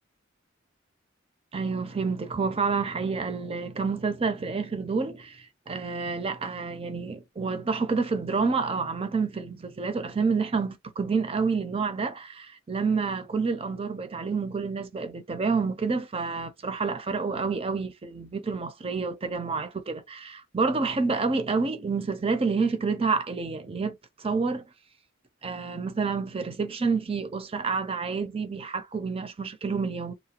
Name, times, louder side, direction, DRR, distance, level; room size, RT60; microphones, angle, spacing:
voice 1, 1.5-24.6 25.4-30.1, right 4 dB, 30° right, 0.5 m, -28 dB
2.9 x 2.1 x 2.8 m
head